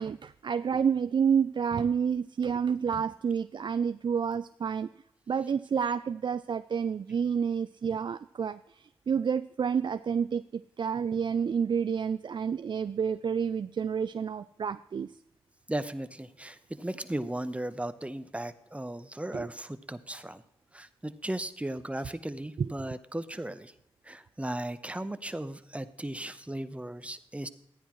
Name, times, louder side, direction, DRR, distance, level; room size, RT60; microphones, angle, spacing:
voice 1, 0.0-4.9 5.3-8.6 9.1-10.4 10.8-15.1 19.3-19.5 22.6-22.7, right 7 dB, 50° right, 12 dB, 0.4 m, -29 dB
voice 2, 15.7-20.4 20.7-23.7 24.0-27.5, right 1 dB, 15° right, 12 dB, 0.9 m, -36 dB
14.0 x 9.8 x 3.1 m, 0.79 s
supercardioid pair, 45°, 10 cm